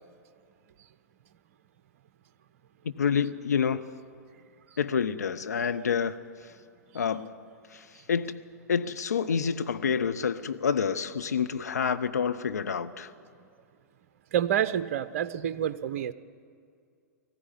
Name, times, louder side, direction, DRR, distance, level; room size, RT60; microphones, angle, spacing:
voice 1, 2.8-3.8 4.8-6.2 6.9-7.3 7.7-8.4 8.7-13.1, left 6 dB, 65° left, 10 dB, 0.7 m, -28 dB
voice 2, 14.3-16.1, right 9 dB, 50° right, 15 dB, 0.7 m, -28 dB
19.0 x 15.0 x 10.0 m, 2.3 s
figure-of-eight pair, 105°, 9 cm